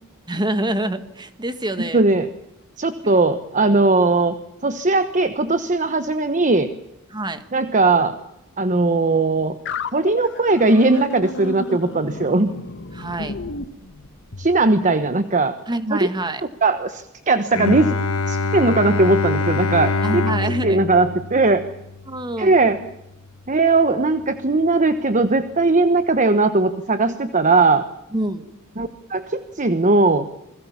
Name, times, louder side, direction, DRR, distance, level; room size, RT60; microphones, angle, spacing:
voice 1, 0.3-2.1 3.0-3.2 7.1-7.5 12.9-13.4 15.7-16.4 20.0-20.8 22.1-22.5 28.1-28.4, right 1 dB, 20° right, 10 dB, 1.8 m, -26 dB
voice 2, 1.8-2.3 2.8-4.3 4.6-6.7 7.5-8.2 8.6-9.6 9.9-12.5 14.4-15.6 15.9-16.1 16.6-17.9 18.3-21.7 22.4-22.8 23.5-27.8 28.8-30.3, right 3 dB, 35° right, 10 dB, 1.1 m, -19 dB
sound 1, 9.7-14.6, left 3 dB, 55° left, 1.5 m, -32 dB
Bowed string instrument, 17.5-23.2, left 3 dB, 75° left, 1.2 m, -25 dB
28.5 x 21.5 x 7.2 m, 0.84 s
head